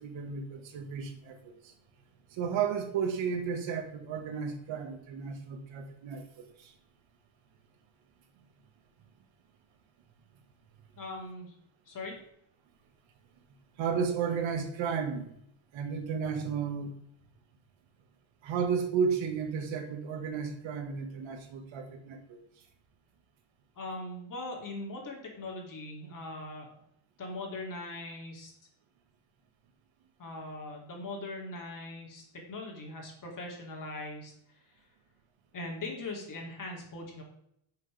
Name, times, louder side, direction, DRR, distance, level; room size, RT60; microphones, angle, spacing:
voice 1, 0.0-1.7 2.3-6.7 13.8-15.3 15.7-16.9 18.4-22.4, right 6 dB, 65° right, 6 dB, 1.8 m, -33 dB
voice 2, 11.0-11.5 11.9-12.1 23.7-26.7 27.2-28.5 30.2-34.3 34.7-34.8 35.5-37.2, left 2 dB, 40° left, 0 dB, 3.0 m, -40 dB
10.5 x 6.7 x 3.5 m, 0.73 s
cardioid pair, 130°, 49 cm